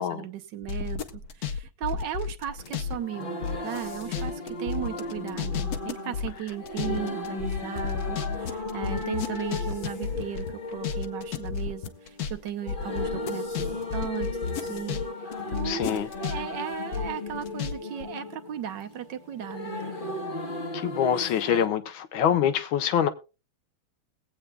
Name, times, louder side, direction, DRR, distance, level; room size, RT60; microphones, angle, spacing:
voice 1, 0.0-19.8, right 10 dB, 70° right, 1.4 m, -36 dB
sound 1, 0.6-3.0 3.2-15.0 15.3-17.7 18.0-18.1, left 6 dB, 60° left, 1.1 m, -32 dB
sound 2, 2.6-21.7, left 2 dB, 35° left, 0.8 m, -36 dB
voice 2, 15.6-16.1 20.7-23.1, left 9 dB, 85° left, 1.6 m, -25 dB
21.0 x 8.3 x 2.3 m
omnidirectional pair, 2.2 m